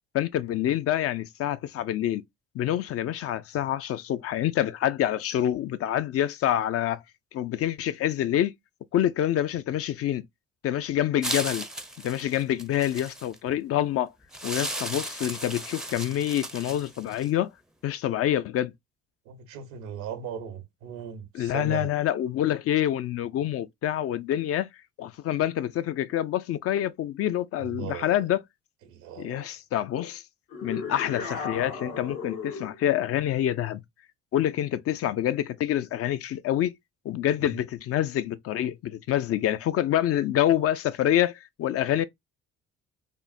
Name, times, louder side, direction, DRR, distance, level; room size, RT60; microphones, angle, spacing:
voice 1, 0.1-2.2 2.5-7.0 7.3-8.5 8.9-10.2 10.6-11.7 12.0-14.1 14.4-17.5 17.8-18.7 21.3-24.7 25.0-28.4 29.2-30.2 30.6-33.8 34.3-36.7 37.0-42.0, left 12 dB, 50° left, 0.4 m, -26 dB
sound 1, 11.2-13.4 14.3-17.3, right 1 dB, ahead, 0.5 m, -35 dB
voice 2, 19.3-21.9 27.7-28.2 28.8-29.5 37.4-37.6, right 7 dB, 85° right, 0.8 m, -38 dB
sound 2, 30.5-32.8, left 4 dB, 80° left, 1.4 m, -35 dB
3.5 x 2.0 x 2.4 m
supercardioid pair, 70°, 29 cm